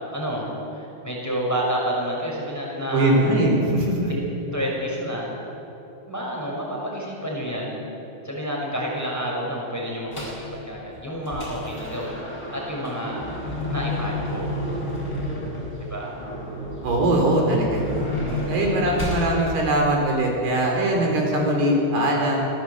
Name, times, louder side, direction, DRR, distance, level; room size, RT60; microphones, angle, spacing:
voice 1, 0.0-3.2 4.0-4.2 4.5-5.3 6.1-7.8 8.2-12.2 12.5-14.5 15.8-16.1 18.2-18.5 18.8-19.0, equal, 5° left, -2 dB, 5.8 m, -29 dB
voice 2, 2.9-4.1 16.8-17.8 18.5-22.5, right 1 dB, 75° right, 0 dB, 6.1 m, -21 dB
sound 1, 10.1-10.5 10.9-19.3, left 1 dB, 25° left, 7.7 m, -30 dB
26.0 x 19.0 x 8.2 m, 3.0 s
omnidirectional pair, 4.7 m